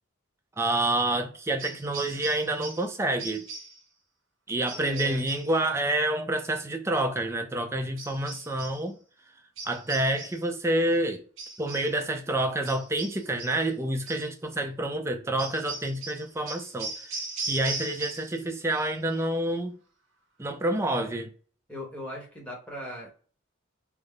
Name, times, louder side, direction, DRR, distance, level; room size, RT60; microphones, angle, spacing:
voice 1, 0.6-3.4 4.5-9.0 9.7-11.2 11.6-19.8 20.4-21.3, right 1 dB, 15° right, 0.4 m, -28 dB
sound 1, 1.6-2.9 3.2-3.8 4.7-5.5 8.0-8.8 9.6-10.5 11.4-12.0 12.6-13.7 14.1-14.3 15.4-18.4 18.7-19.2, right 3 dB, 70° right, 0.9 m, -39 dB
voice 2, 4.7-5.2 21.7-23.1, equal, 5° left, 1.0 m, -38 dB
3.4 x 2.0 x 3.7 m
head